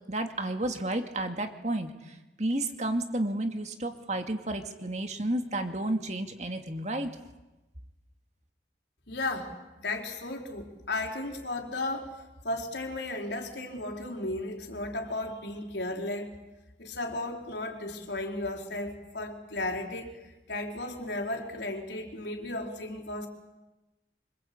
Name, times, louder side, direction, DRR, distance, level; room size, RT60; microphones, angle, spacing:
voice 1, 0.1-7.2, right 1 dB, 40° right, 5 dB, 2.4 m, -31 dB
voice 2, 9.1-9.5 9.8-12.1 12.4-16.4 16.8-23.3, left 2 dB, 70° left, 2 dB, 4.4 m, -35 dB
26.5 x 25.5 x 8.6 m, 1.0 s
head